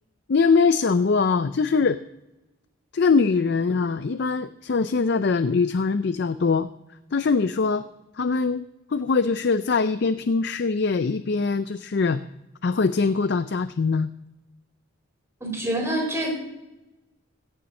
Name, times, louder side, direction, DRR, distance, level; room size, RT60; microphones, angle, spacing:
voice 1, 0.3-2.0 2.9-6.7 7.1-7.9 8.2-8.6 8.9-12.2 12.6-14.1, left 4 dB, 55° left, 12 dB, 0.4 m, -22 dB
voice 2, 15.4-16.3, right 1 dB, 15° right, 0 dB, 4.3 m, -26 dB
16.5 x 7.0 x 6.4 m, 0.96 s
head